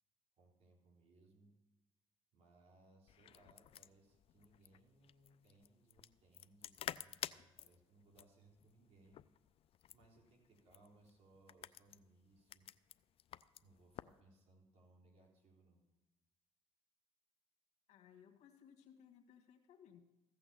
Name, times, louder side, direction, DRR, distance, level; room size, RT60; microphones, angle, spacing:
voice 1, 0.4-1.5 2.3-9.2 9.9-12.7 13.6-15.8, right 2 dB, 60° right, -1 dB, 3.8 m, -68 dB
sound 1, 3.1-14.2, left 11 dB, 50° left, 0.4 m, -52 dB
voice 2, 17.9-20.0, left 8 dB, 70° left, 3 dB, 1.6 m, -62 dB
15.0 x 6.1 x 6.9 m, 1.0 s
supercardioid pair, 70°, 12 cm